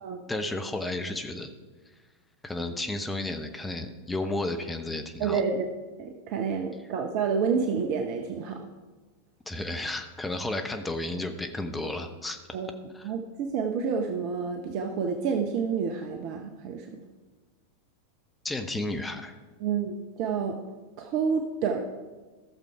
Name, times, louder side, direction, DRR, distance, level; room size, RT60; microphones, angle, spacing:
voice 1, 0.3-1.5 2.4-5.4 9.5-12.4 12.9-13.1 18.4-19.3, left 2 dB, 10° left, 6 dB, 0.8 m, -32 dB
voice 2, 5.2-5.6 6.0-8.6 12.5-12.7 13.0-16.8 19.6-20.5 21.0-21.8, right 6 dB, 45° right, 4 dB, 0.8 m, -29 dB
14.5 x 6.8 x 4.7 m, 1.3 s
figure-of-eight pair, 90°, 0 cm